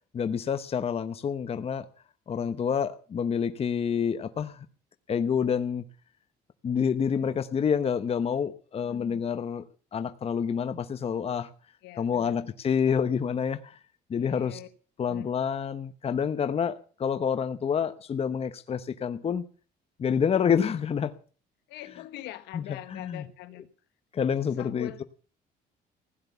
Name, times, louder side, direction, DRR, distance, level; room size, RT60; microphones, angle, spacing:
voice 1, 0.1-1.8 2.3-4.7 5.1-5.8 6.6-9.6 9.9-11.5 12.0-13.8 14.1-14.6 15.0-19.4 20.0-21.1 22.5-22.6 23.0-23.2 24.1-24.9, left 7 dB, 35° left, 1.0 m, -28 dB
voice 2, 7.1-7.4 8.8-9.3 11.8-12.5 14.1-14.7 15.0-15.3 21.7-23.6 24.4-25.0, left 14 dB, 85° left, 1.5 m, -43 dB
16.0 x 10.5 x 6.9 m
cardioid pair, 110°, 17 cm